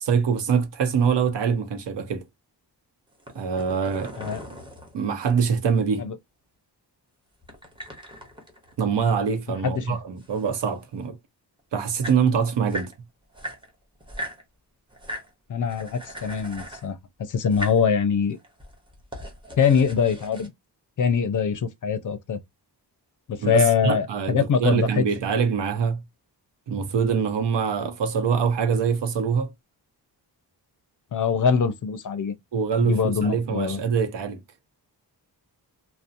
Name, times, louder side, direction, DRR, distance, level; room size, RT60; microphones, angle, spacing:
voice 1, 0.0-2.2 3.3-4.1 4.9-6.1 8.8-11.2 11.7-12.9 23.4-26.0 26.7-29.5 32.5-34.4, right 6 dB, 80° right, 0.7 m, -24 dB
sound 1, 3.1-5.6 7.4-9.5 9.8-11.0 11.6-11.7 11.8-12.9 13.3-14.4 14.9-15.3 15.7-16.9 17.4-17.9 18.4-20.5, equal, 10° right, 0.7 m, -39 dB
voice 2, 9.6-10.0 15.5-18.4 19.6-20.5 21.0-22.4 23.3-25.0 31.1-32.3 32.8-33.8, left 6 dB, 50° left, 0.4 m, -23 dB
2.7 x 2.0 x 2.4 m
wide cardioid pair, 155°, 41 cm